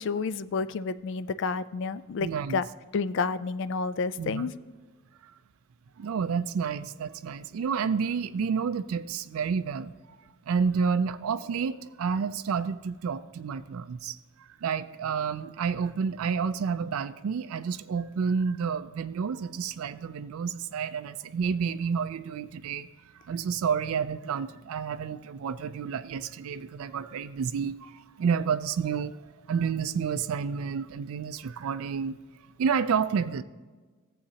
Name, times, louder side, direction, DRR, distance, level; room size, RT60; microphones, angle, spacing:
voice 1, 0.0-2.6 2.9-4.5, left 4 dB, 55° left, 14 dB, 0.3 m, -30 dB
voice 2, 2.2-2.6 4.2-4.5 5.2-5.3 6.0-9.9 10.5-22.9 23.2-29.2 29.5-32.2 32.6-33.4, right 6 dB, 80° right, 11 dB, 0.4 m, -30 dB
14.5 x 7.8 x 2.8 m, 1.4 s
head